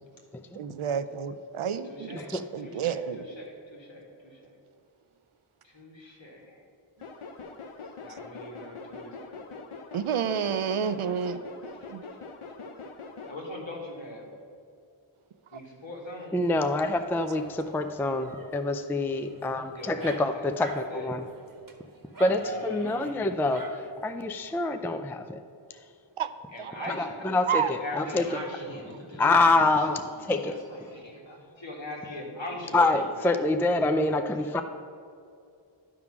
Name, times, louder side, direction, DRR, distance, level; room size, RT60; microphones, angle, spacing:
voice 1, 0.5-3.3 9.9-11.4 11.9-12.0 15.5-15.6 26.2-26.3 26.6-26.9 27.5-27.7, right 7 dB, 80° right, 12 dB, 0.5 m, -30 dB
voice 2, 1.8-2.3 2.6-4.5 5.6-6.6 8.0-9.4 13.3-14.3 15.5-16.5 19.7-20.4 20.9-21.2 22.4-23.8 26.5-27.3 27.6-34.6, left 1 dB, 65° left, -2 dB, 1.8 m, -42 dB
sound 1, 7.0-13.4, left 4 dB, 90° left, 0.8 m, -43 dB
voice 3, 16.3-21.2 22.2-23.7 24.0-25.4 27.0-28.2 29.2-30.0 30.3-30.5 32.7-34.6, left 2 dB, 5° left, 8 dB, 0.3 m, -26 dB
Dog, 16.4-24.6, right 1 dB, 40° right, 1.1 m, -45 dB
11.0 x 3.8 x 5.9 m, 2.4 s
wide cardioid pair, 40°, 49 cm